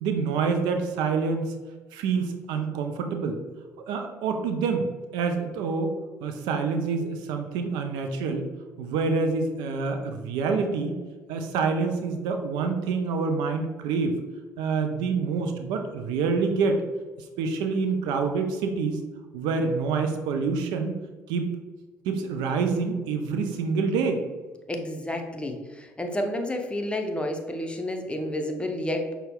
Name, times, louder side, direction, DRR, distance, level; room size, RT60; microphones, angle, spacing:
voice 1, 0.0-1.5 1.9-3.4 3.9-4.8 5.1-5.9 6.2-8.5 8.8-11.0 11.3-14.2 14.6-16.8 17.4-19.0 19.3-21.0 21.3-21.5 22.0-24.2, right 4 dB, 70° right, 5 dB, 0.5 m, -27 dB
voice 2, 24.7-29.1, left 1 dB, 15° left, 4 dB, 0.7 m, -30 dB
5.6 x 2.2 x 3.4 m, 1.3 s
hypercardioid pair, 55°, 8 cm